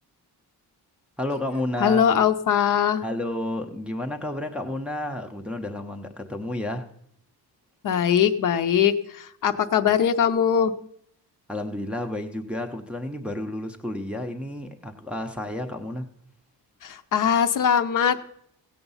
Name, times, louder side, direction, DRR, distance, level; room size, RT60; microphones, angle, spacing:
voice 1, 1.2-2.0 3.0-6.9 11.5-16.1, left 1 dB, 5° right, 0.6 m, -31 dB
voice 2, 1.8-3.0 7.8-10.8 16.8-18.3, left 8 dB, 55° left, 0.6 m, -21 dB
17.0 x 7.0 x 5.5 m
wide cardioid pair, 175°, 38 cm